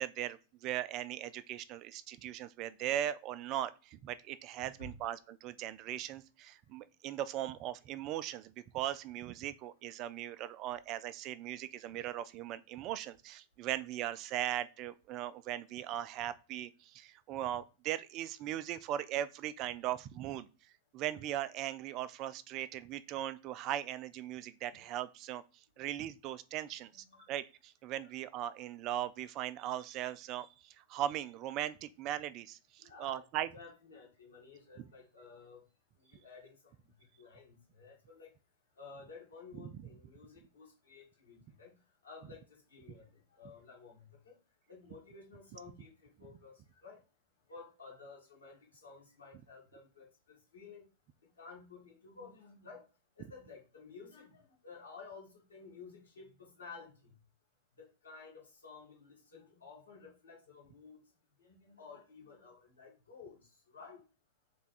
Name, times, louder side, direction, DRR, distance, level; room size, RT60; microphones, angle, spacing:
voice 1, 0.0-20.5 20.9-25.4 25.8-33.5 39.6-39.7, right 12 dB, 40° right, 15 dB, 0.3 m, -39 dB
voice 2, 4.6-5.0 7.1-7.2 25.8-25.9 26.8-27.3 28.0-28.1 32.8-33.2 33.5-35.6 36.0-36.7 37.0-38.3 38.8-41.7 42.0-44.4 44.7-47.0 47.5-50.8 51.2-52.8 53.2-57.1 57.8-61.0 61.4-64.0, left 4 dB, 85° left, -2 dB, 1.6 m, -53 dB
3.3 x 2.3 x 4.0 m, 0.33 s
hypercardioid pair, 100°, 0 cm